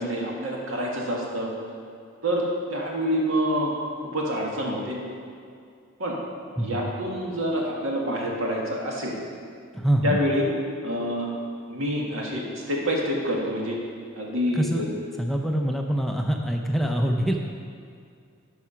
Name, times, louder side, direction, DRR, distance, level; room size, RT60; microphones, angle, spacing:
voice 1, 0.0-1.5 2.2-2.4 2.7-3.7 4.0-5.0 6.0-6.2 6.6-9.2 10.0-10.5 10.8-11.3 11.7-13.8 14.2-15.0, equal, 85° right, -2 dB, 1.8 m, -27 dB
voice 2, 9.7-10.2 14.5-14.8 15.2-17.5, right 1 dB, ahead, 2 dB, 0.4 m, -24 dB
12.0 x 4.8 x 5.6 m, 2.3 s
head